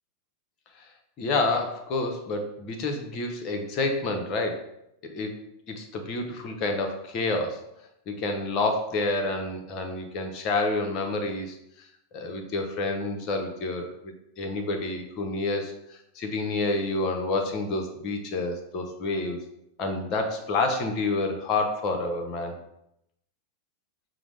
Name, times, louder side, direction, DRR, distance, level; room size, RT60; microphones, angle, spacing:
voice 1, 1.2-4.7 5.1-5.4 5.7-7.6 8.1-11.5 12.1-19.4 19.8-22.6, left 2 dB, 35° left, 4 dB, 0.6 m, -29 dB
6.0 x 2.0 x 3.2 m, 0.82 s
figure-of-eight pair, 90°, 0 cm